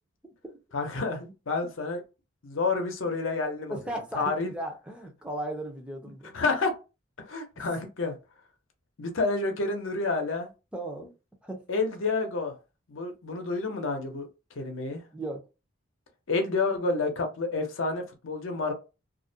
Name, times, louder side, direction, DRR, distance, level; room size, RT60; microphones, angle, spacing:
voice 1, 0.7-2.0 2.4-3.8 4.2-4.5 6.3-6.7 7.2-8.2 9.0-10.5 11.7-12.6 12.9-14.3 14.6-15.0 16.3-18.7, left 3 dB, 85° left, 0.7 m, -29 dB
voice 2, 3.7-6.3 7.6-7.7 10.7-11.1 11.4-11.6 15.1-15.4, right 1 dB, 5° right, 0.5 m, -36 dB
2.4 x 2.1 x 2.6 m
head